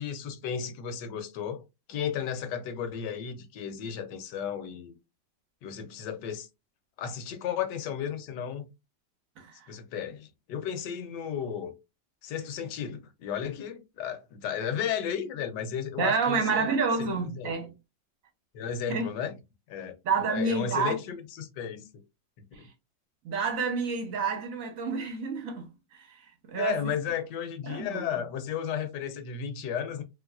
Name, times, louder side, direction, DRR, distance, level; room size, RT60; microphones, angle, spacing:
voice 1, 0.0-1.6 1.9-4.9 5.6-6.5 7.0-8.7 9.7-11.7 12.2-16.7 17.0-17.5 18.5-19.4 19.7-21.9 22.6-22.7 26.6-30.0, left 8 dB, 70° left, 1.2 m, -34 dB
voice 2, 16.0-17.7 18.9-19.1 20.0-20.9 22.5-22.7 23.2-26.2 26.5-26.8 27.6-28.0, right 4 dB, 55° right, 1.1 m, -29 dB
3.2 x 3.1 x 2.3 m
omnidirectional pair, 2.0 m